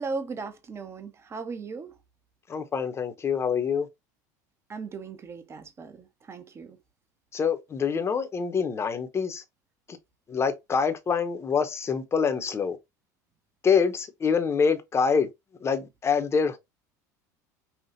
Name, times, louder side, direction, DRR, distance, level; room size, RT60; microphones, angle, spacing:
voice 1, 0.0-1.9 4.7-6.8, right 4 dB, 30° right, 0.9 m, -37 dB
voice 2, 2.5-3.9 7.3-9.4 10.3-12.8 13.6-15.3 15.6-16.6, left 6 dB, 30° left, 1.0 m, -25 dB
5.8 x 2.4 x 2.8 m
hypercardioid pair, 80°, 9 cm